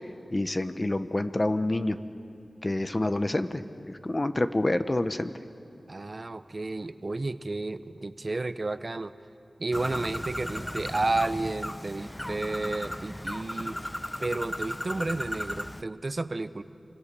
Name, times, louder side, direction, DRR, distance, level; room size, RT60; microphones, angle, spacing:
voice 1, 0.3-2.0 2.6-5.3, left 1 dB, 30° left, 10 dB, 1.1 m, -27 dB
voice 2, 5.9-9.1 9.6-13.8 14.2-16.6, right 2 dB, 45° right, 12 dB, 0.8 m, -32 dB
Bird, 9.7-15.8, left 1 dB, 15° left, 0.6 m, -36 dB
27.0 x 25.5 x 6.9 m, 2.5 s
wide cardioid pair, 65°, 0 cm